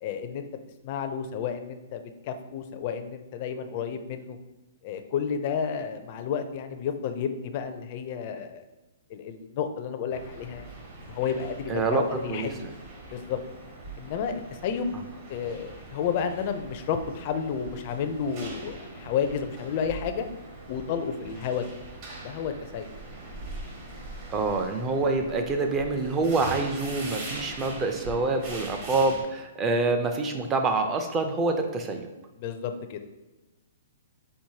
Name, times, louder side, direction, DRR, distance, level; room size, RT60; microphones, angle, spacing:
voice 1, 0.0-0.5 0.8-4.4 4.8-8.6 9.1-10.7 11.0-12.5 13.1-13.4 14.0-14.9 15.3-20.3 20.7-21.6 22.2-22.9 32.4-33.0, left 7 dB, 35° left, 7 dB, 0.4 m, -31 dB
sound 1, 10.1-29.2, right 2 dB, 35° right, 1.1 m, -42 dB
voice 2, 11.7-12.5 24.3-32.1, right 3 dB, 15° right, 5 dB, 0.5 m, -26 dB
4.5 x 4.2 x 2.8 m, 1.1 s
hypercardioid pair, 160°, 0 cm